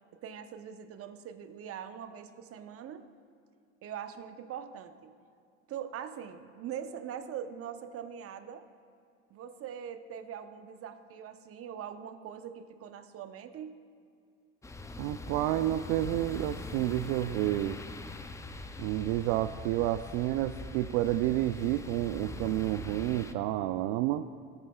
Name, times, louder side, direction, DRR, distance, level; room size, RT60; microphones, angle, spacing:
voice 1, 0.2-3.1 3.8-5.1 5.7-8.6 9.3-13.8, right 8 dB, 40° right, 9 dB, 0.9 m, -42 dB
sound 1, 14.6-23.3, left 3 dB, 10° left, 0.4 m, -42 dB
voice 2, 15.0-17.8 18.8-24.3, right 14 dB, 60° right, 9 dB, 0.5 m, -30 dB
18.5 x 8.1 x 2.3 m, 2.4 s
hypercardioid pair, 80°, 34 cm